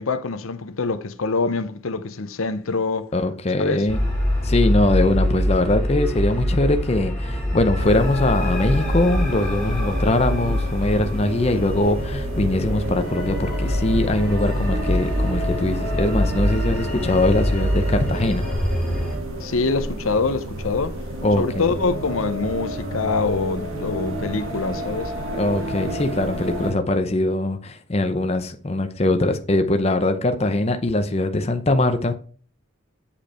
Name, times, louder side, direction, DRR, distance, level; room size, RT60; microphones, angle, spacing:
voice 1, 0.0-3.1 3.6-3.8 19.4-21.0 21.4-25.1, left 4 dB, 75° left, 0.7 m, -25 dB
voice 2, 3.1-4.0 4.4-18.5 21.2-21.7 25.4-32.1, left 2 dB, 30° left, 0.6 m, -22 dB
sound 1, 3.9-19.2, equal, 5° left, 2.7 m, -24 dB
sound 2, 7.8-26.7, right 1 dB, 75° right, 1.8 m, -31 dB
8.7 x 5.2 x 4.3 m
head